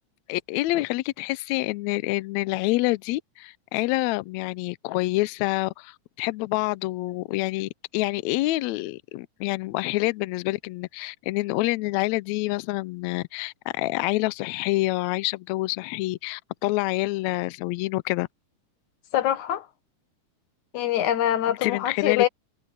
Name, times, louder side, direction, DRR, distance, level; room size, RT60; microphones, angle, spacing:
voice 1, 0.3-18.3 21.5-22.3, left 20 dB, 85° left, 1.6 m, -27 dB
voice 2, 19.1-19.7 20.7-22.3, left 11 dB, 70° left, 2.7 m, -24 dB
omnidirectional pair, 3.7 m